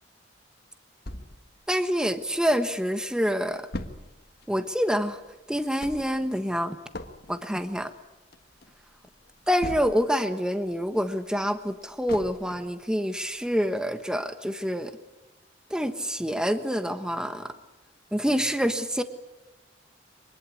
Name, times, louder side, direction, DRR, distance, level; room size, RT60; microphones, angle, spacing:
sound 1, 1.1-2.6 3.0-3.1 3.3-10.3 10.7-12.8 13.3-13.4 13.8-13.9, left 1 dB, 55° left, 1.7 m, -41 dB
voice 1, 1.7-3.7 4.5-5.2 5.5-6.7 7.3-7.9 9.5-14.9 15.7-17.5 18.1-19.0, equal, 5° right, 9 dB, 1.2 m, -27 dB
24.5 x 20.0 x 8.6 m, 1.0 s
head